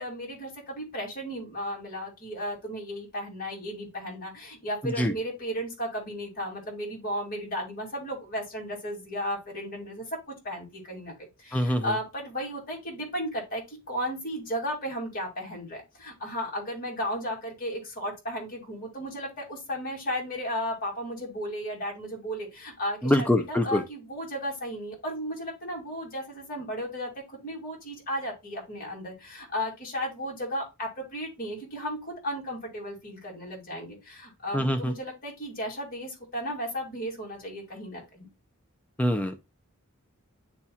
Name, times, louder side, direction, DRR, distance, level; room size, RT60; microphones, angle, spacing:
voice 1, 0.0-38.3, equal, 40° left, 2.5 m, -34 dB
voice 2, 11.5-11.9 23.0-23.8 34.5-34.9 39.0-39.4, left 1 dB, 5° left, 0.4 m, -24 dB
9.9 x 4.2 x 2.3 m
head